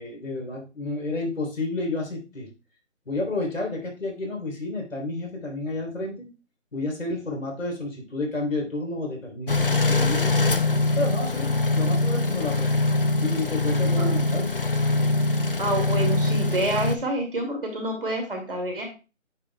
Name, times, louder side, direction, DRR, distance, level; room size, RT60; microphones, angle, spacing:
voice 1, 0.0-2.5 3.1-6.3 6.7-10.4 11.0-12.8 13.2-14.6, left 2 dB, 85° left, 1 dB, 3.4 m, -31 dB
sound 1, 9.5-17.0, left 2 dB, 45° left, 0.5 m, -23 dB
voice 2, 15.6-18.9, right 1 dB, 45° right, 2 dB, 2.1 m, -28 dB
8.4 x 6.0 x 2.2 m, 0.31 s
figure-of-eight pair, 180°, 38 cm